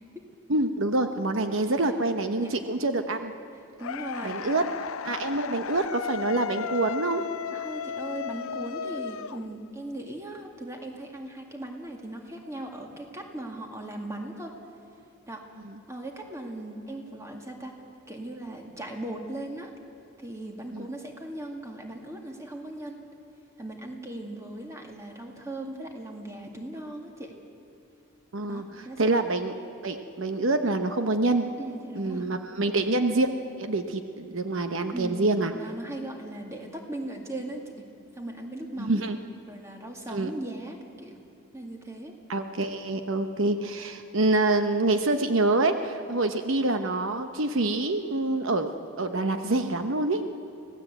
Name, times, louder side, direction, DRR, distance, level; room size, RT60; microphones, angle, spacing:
voice 1, 0.5-3.3 4.2-4.6 5.0-7.3 15.6-15.8 20.7-20.9 28.3-28.6 29.0-29.5 29.8-31.5 32.0-33.3 33.6-35.5 38.8-39.2 40.1-40.3 42.3-50.2, right 2 dB, 65° right, 7 dB, 0.9 m, -26 dB
voice 2, 2.2-2.6 3.8-4.4 7.5-14.5 15.3-15.4 15.9-17.8 18.1-19.7 20.2-23.0 23.6-27.4 28.5-29.1 31.6-32.3 34.9-37.9 38.1-39.1 39.5-41.2 41.5-42.1, right 1 dB, 15° right, 1 dB, 2.1 m, -38 dB
sound 1, 3.8-9.9, left 7 dB, 75° left, 0.5 m, -35 dB
25.0 x 17.0 x 8.1 m, 2.8 s
head